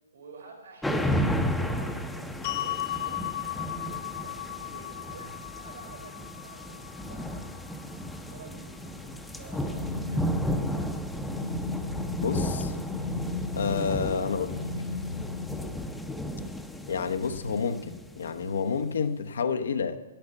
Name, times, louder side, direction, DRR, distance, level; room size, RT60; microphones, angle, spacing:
voice 1, 0.1-7.5 8.3-10.9, right 4 dB, 75° right, 4.9 m, -50 dB
sound 1, 0.8-18.6, equal, 5° left, 0.7 m, -33 dB
sound 2, 2.4-8.6, left 15 dB, 45° left, 0.8 m, -37 dB
sound 3, 9.7-16.0, left 3 dB, 90° left, 1.1 m, -36 dB
voice 2, 12.2-12.8 13.5-14.6 16.9-20.0, left 5 dB, 70° left, 0.9 m, -29 dB
10.5 x 9.6 x 7.3 m
hypercardioid pair, 120°, 0 cm